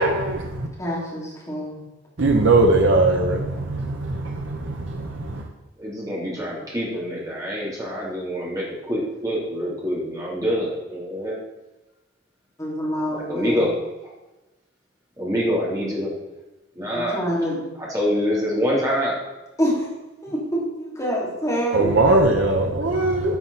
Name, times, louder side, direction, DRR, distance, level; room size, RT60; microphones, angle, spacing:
voice 1, 0.0-0.7 2.2-5.5 21.7-23.4, right 2 dB, 70° right, 0.8 m, -20 dB
voice 2, 0.8-1.8 12.6-13.7 16.9-17.6 19.6-19.9 20.2-22.0, equal, 15° left, 2.9 m, -26 dB
voice 3, 5.8-11.4 13.1-13.7 14.0-14.1 15.2-16.1 16.7-17.2 17.8-19.1, equal, 20° right, 3.2 m, -25 dB
10.5 x 5.8 x 4.1 m
head